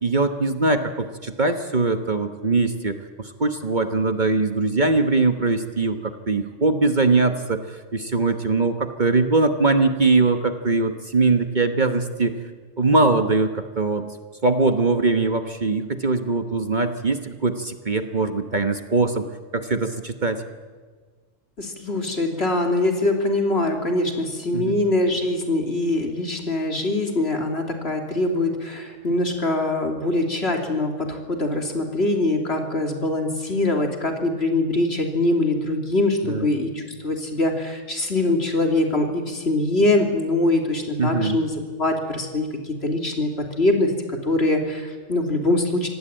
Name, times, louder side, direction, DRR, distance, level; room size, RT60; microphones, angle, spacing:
voice 1, 0.0-0.9 1.2-3.0 3.4-6.0 6.3-12.3 12.8-14.0 14.4-19.2 19.5-20.4 24.5-24.8 36.2-36.4 41.0-41.4, right 3 dB, 40° right, 7 dB, 1.3 m, -21 dB
voice 2, 21.6-45.9, left 2 dB, 55° left, 3 dB, 3.4 m, -23 dB
26.0 x 18.5 x 8.9 m, 1.4 s
omnidirectional pair, 1.3 m